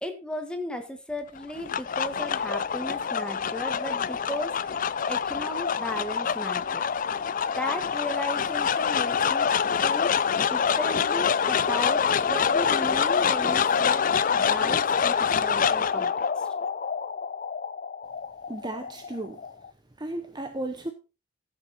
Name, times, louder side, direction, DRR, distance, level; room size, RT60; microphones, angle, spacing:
voice 1, 0.0-4.8 5.1-6.9 7.5-9.5 9.8-14.0 14.3-16.5, left 1 dB, 5° left, 1.6 m, -35 dB
sound 1, 1.4-19.7, left 6 dB, 40° left, 0.4 m, -26 dB
voice 2, 18.5-19.4 20.0-20.9, right 1 dB, 20° right, 0.9 m, -34 dB
15.0 x 7.0 x 4.2 m
head